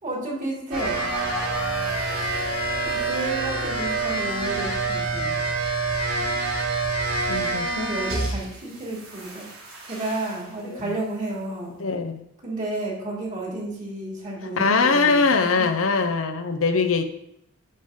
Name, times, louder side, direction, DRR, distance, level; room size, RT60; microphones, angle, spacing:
voice 1, 0.0-1.1 2.8-5.4 7.7-9.4 9.8-11.8 12.4-15.7, right 2 dB, 40° right, -3 dB, 2.9 m, -31 dB
sound 1, 0.7-8.6 8.9-10.4, right 3 dB, 85° right, 2.9 m, -27 dB
voice 2, 7.3-7.9 10.7-10.9 11.8-12.2 14.6-17.0, left 4 dB, 80° left, 8 dB, 0.8 m, -22 dB
9.5 x 5.1 x 3.8 m, 0.75 s
head